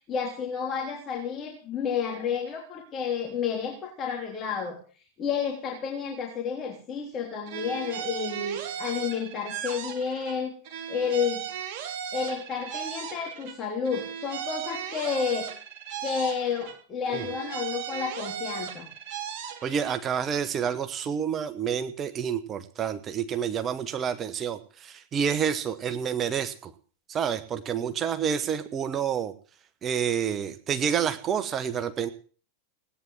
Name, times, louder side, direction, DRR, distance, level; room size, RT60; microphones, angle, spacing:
voice 1, 0.1-4.8 5.2-10.5 10.9-11.4 12.1-15.5 16.0-18.9, left 6 dB, 30° left, 1 dB, 3.4 m, -31 dB
sound 1, 7.5-10.4 10.6-13.6 13.8-16.8 17.0-20.0, right 8 dB, 45° right, 3.9 m, -37 dB
voice 2, 19.6-26.7 27.1-29.3 29.8-32.1, right 8 dB, 25° right, 10 dB, 1.4 m, -29 dB
17.5 x 9.7 x 7.6 m, 0.40 s
figure-of-eight pair, 90°, 0 cm